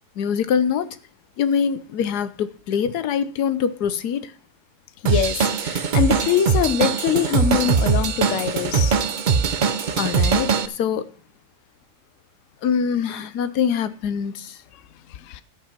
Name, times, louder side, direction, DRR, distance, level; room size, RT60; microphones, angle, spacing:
voice 1, 0.2-1.0 1.4-4.3 10.0-11.1 12.6-14.6, left 7 dB, 80° left, 1.4 m, -24 dB
voice 2, 5.0-9.0 15.1-15.4, left 9 dB, 60° left, 0.9 m, -23 dB
Drum kit / Drum, 5.0-10.7, right 5 dB, 50° right, 0.6 m, -21 dB
13.5 x 5.7 x 5.9 m
omnidirectional pair, 1.7 m